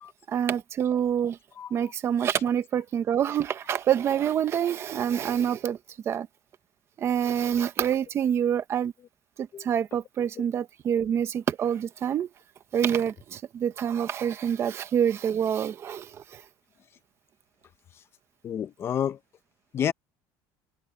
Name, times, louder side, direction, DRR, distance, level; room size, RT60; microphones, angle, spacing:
voice 1, 0.3-1.4 1.7-5.8 6.1-6.3 7.0-8.9 9.4-12.3 12.7-16.1 16.3-16.4, right 9 dB, 30° right, 1.0 m, -26 dB
voice 2, 18.4-19.2 19.7-19.9, left 9 dB, 25° left, 0.7 m, -29 dB
cardioid pair, 180°, 9 cm